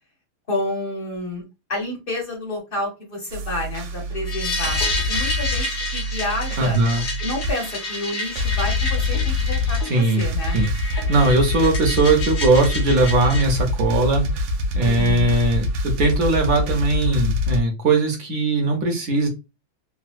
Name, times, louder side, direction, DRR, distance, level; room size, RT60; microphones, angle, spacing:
voice 1, 0.5-1.4 1.7-4.8 5.1-6.8 7.2-10.6 14.8-15.3, left 1 dB, 40° left, -1 dB, 0.7 m, -29 dB
sound 1, 3.3-17.6, left 2 dB, 90° right, 1.5 m, -25 dB
sound 2, 4.3-13.4, left 2 dB, 65° left, 1.2 m, -30 dB
voice 2, 6.6-7.0 9.8-14.2 14.7-19.3, right 2 dB, 65° right, 1 dB, 0.9 m, -20 dB
3.8 x 2.0 x 2.4 m, 0.26 s
omnidirectional pair, 2.2 m